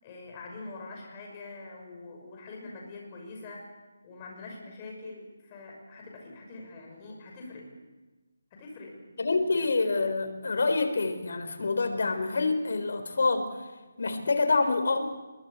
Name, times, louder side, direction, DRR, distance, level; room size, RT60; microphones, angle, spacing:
voice 1, 0.0-3.7 4.0-7.7 8.5-9.7, left 3 dB, 20° left, 0 dB, 5.9 m, -44 dB
voice 2, 9.2-13.7 14.0-15.1, left 3 dB, 60° left, 6 dB, 4.1 m, -27 dB
22.0 x 22.0 x 8.4 m, 1.2 s
hypercardioid pair, 170°, 0 cm